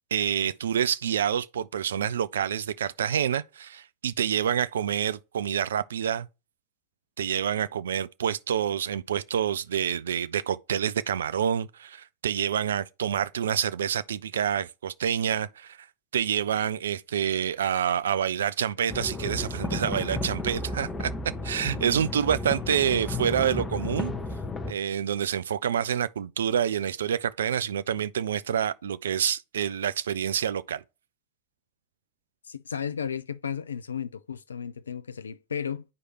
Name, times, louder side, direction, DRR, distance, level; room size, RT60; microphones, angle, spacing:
voice 1, 0.1-6.3 7.2-15.9 16.1-21.1 21.4-24.1 24.7-30.8, right 9 dB, 65° right, 0.4 m, -27 dB
sound 1, 18.9-24.7, left 3 dB, 15° left, 0.9 m, -33 dB
voice 2, 32.4-35.8, left 7 dB, 70° left, 0.4 m, -34 dB
9.5 x 4.8 x 2.9 m
figure-of-eight pair, 90°, 0 cm